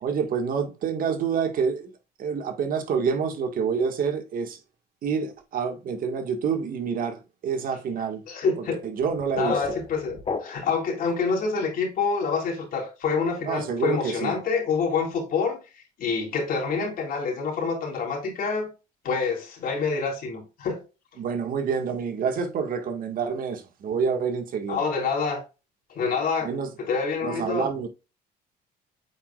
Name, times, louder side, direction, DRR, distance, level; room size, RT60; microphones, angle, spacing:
voice 1, 0.0-1.9 2.2-4.6 5.0-8.2 8.8-9.6 13.4-14.4 21.2-24.8 26.4-26.7 27.2-27.9, right 6 dB, 55° right, 1.7 m, -27 dB
voice 2, 8.3-8.8 9.3-15.6 16.0-18.7 19.0-20.8 24.7-25.4 25.9-26.5 26.8-27.7, left 5 dB, 60° left, 3.2 m, -27 dB
sound 1, 9.0-10.9, left 4 dB, 35° left, 1.3 m, -34 dB
8.4 x 4.9 x 2.4 m
cardioid pair, 110°, 17 cm